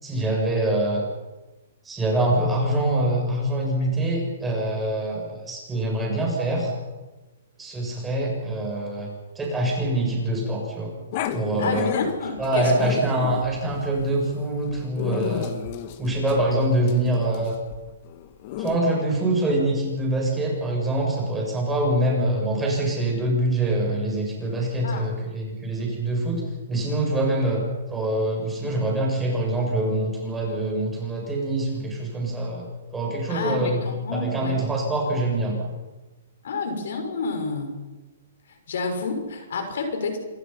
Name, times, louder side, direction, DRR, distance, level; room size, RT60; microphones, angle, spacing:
voice 1, 0.0-1.1 1.8-6.7 7.6-9.1 9.3-10.9 11.3-11.9 12.4-15.5 16.0-17.6 18.6-26.4 26.7-27.6 27.9-32.7 32.9-33.8 34.1-35.7, right 1 dB, 10° right, -2 dB, 7.7 m, -24 dB
Growling, 11.1-18.8, left 10 dB, 40° left, 1.9 m, -33 dB
voice 2, 11.6-12.9 24.8-25.1 33.3-34.6 36.4-37.8 38.7-40.2, left 4 dB, 70° left, 5 dB, 6.1 m, -29 dB
27.0 x 24.0 x 5.9 m, 1.2 s
hypercardioid pair, 160°, 0 cm